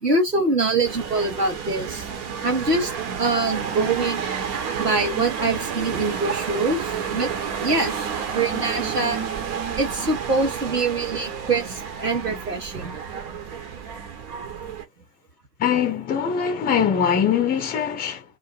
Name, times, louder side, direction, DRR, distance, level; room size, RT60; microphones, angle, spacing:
voice 1, 0.0-2.1 2.4-2.9 3.2-4.3 4.8-7.3 7.6-7.9 8.2-9.2 9.8-13.0, right 3 dB, 85° right, 1.2 m, -24 dB
sound 1, 0.8-14.8, right 7 dB, 35° right, 0.9 m, -30 dB
voice 2, 15.6-18.2, left 7 dB, 20° left, 0.8 m, -22 dB
2.6 x 2.1 x 3.2 m
figure-of-eight pair, 90°, 47 cm